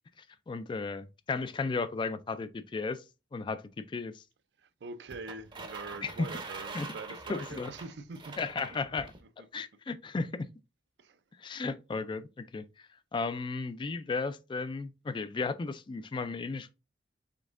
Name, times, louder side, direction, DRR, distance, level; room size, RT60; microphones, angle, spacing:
voice 1, 0.5-3.0 3.3-4.2 6.0-6.3 6.7-6.9 7.3-7.7 8.4-9.1 9.5-10.5 11.4-12.7 13.1-16.7, left 4 dB, 25° left, 0.3 m, -34 dB
voice 2, 4.6-8.5 9.4-9.6 11.0-11.2, right 3 dB, 70° right, 0.4 m, -44 dB
sound 1, 5.1-9.2, right 3 dB, 25° right, 0.6 m, -44 dB
5.1 x 3.5 x 2.5 m
head